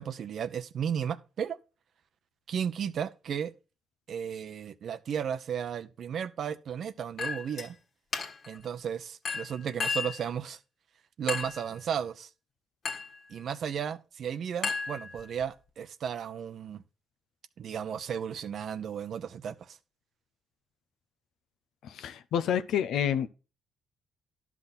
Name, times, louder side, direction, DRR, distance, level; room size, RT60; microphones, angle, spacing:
voice 1, 0.0-1.6 2.5-3.5 4.1-7.8 8.5-10.6 11.2-12.3 13.3-16.8 17.6-19.8, right 8 dB, 60° right, 0.7 m, -34 dB
Chink clink, 7.2-7.7 8.1-8.6 9.2-10.2 11.3-11.7 12.8-13.2 14.6-15.4, left 4 dB, 55° left, 1.6 m, -34 dB
voice 2, 21.8-23.3, left 9 dB, 80° left, 0.6 m, -28 dB
12.0 x 5.9 x 4.1 m
cardioid pair, 90°, 0 cm